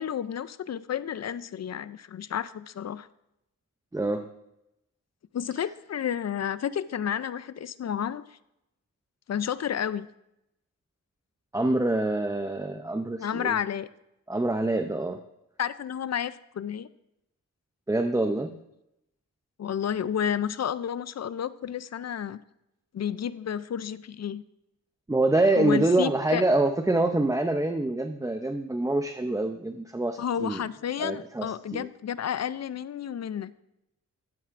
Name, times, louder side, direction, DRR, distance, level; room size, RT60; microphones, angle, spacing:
voice 1, 0.0-3.1 5.3-8.4 9.3-10.1 13.2-13.9 15.6-16.9 19.6-22.4 22.9-24.4 25.6-26.4 30.2-33.5, left 9 dB, 50° left, 17 dB, 0.4 m, -31 dB
voice 2, 3.9-4.3 11.5-13.6 14.3-15.2 17.9-18.6 25.1-30.6 31.0-31.8, right 2 dB, 10° right, 7 dB, 0.5 m, -26 dB
12.5 x 9.1 x 2.5 m, 0.86 s
wide cardioid pair, 75°, 33 cm